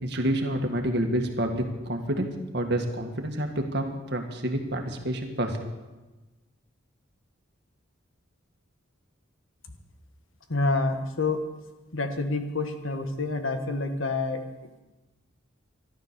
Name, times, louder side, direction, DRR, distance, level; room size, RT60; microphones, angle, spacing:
voice 1, 0.0-2.3 2.5-5.7, right 1 dB, 55° right, 3 dB, 1.9 m, -28 dB
voice 2, 10.5-11.4 11.9-14.4, left 3 dB, 75° left, 7 dB, 1.6 m, -27 dB
14.0 x 12.0 x 7.0 m, 1.1 s
head